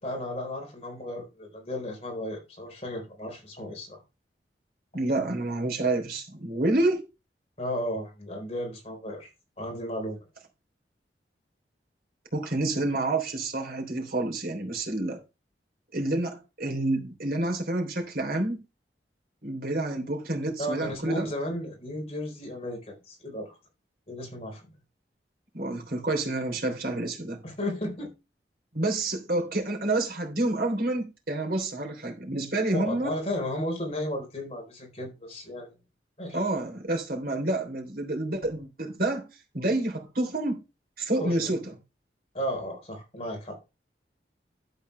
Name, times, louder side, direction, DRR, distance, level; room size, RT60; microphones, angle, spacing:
voice 1, 0.0-4.0 7.6-9.3 9.6-10.2 20.6-23.5 24.1-24.6 27.4-28.1 32.7-35.7 36.2-36.4 41.2-41.5 42.3-43.6, left 1 dB, 35° left, 4.2 m, -34 dB
voice 2, 4.9-7.0 12.3-15.2 15.9-18.6 19.4-21.3 25.5-27.4 28.7-33.1 36.3-39.3 39.5-40.6 41.0-41.7, right 2 dB, 55° right, 3.3 m, -28 dB
12.0 x 8.3 x 3.4 m
head